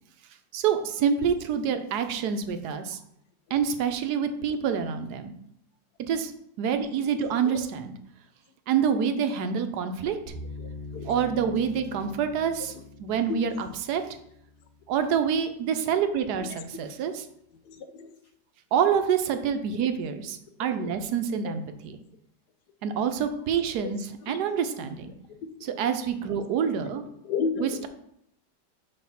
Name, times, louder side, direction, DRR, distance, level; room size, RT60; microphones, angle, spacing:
voice 1, 0.5-3.0 3.5-5.3 6.1-6.3 6.6-7.9 8.7-10.2 11.1-12.7 13.0-14.0 14.9-17.2 18.7-22.0 22.8-24.0 24.3-25.1 25.6-27.0 27.6-27.9, right 7 dB, 75° right, 1.2 m, -27 dB
voice 2, 7.1-7.6 10.6-11.2 13.3-13.6 16.4-16.6 17.6-18.2 20.6-20.9 21.4-21.5 23.8-23.9 24.2-24.4 27.2-27.9, left 5 dB, 75° left, 1.2 m, -34 dB
sound 1, 10.3-15.4, left 2 dB, 55° right, 1.3 m, -43 dB
6.6 x 3.2 x 5.7 m
omnidirectional pair, 1.8 m